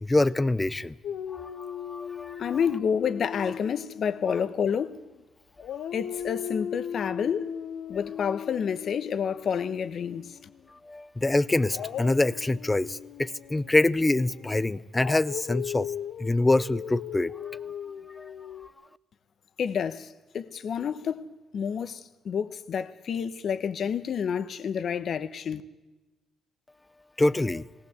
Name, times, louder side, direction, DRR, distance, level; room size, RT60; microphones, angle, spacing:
voice 1, 0.0-1.0 1.3-2.4 10.8-15.9 16.2-17.6 18.2-18.3 27.2-27.7, left 2 dB, 15° left, 0.6 m, -25 dB
Dog, 1.0-5.2 5.6-10.6 11.7-18.7, left 9 dB, 75° left, 0.6 m, -38 dB
voice 2, 2.4-5.0 5.9-7.5 7.9-10.4 19.6-21.3 21.5-25.6, left 7 dB, 60° left, 1.0 m, -29 dB
18.5 x 18.0 x 8.1 m
cardioid pair, 90°, 0 cm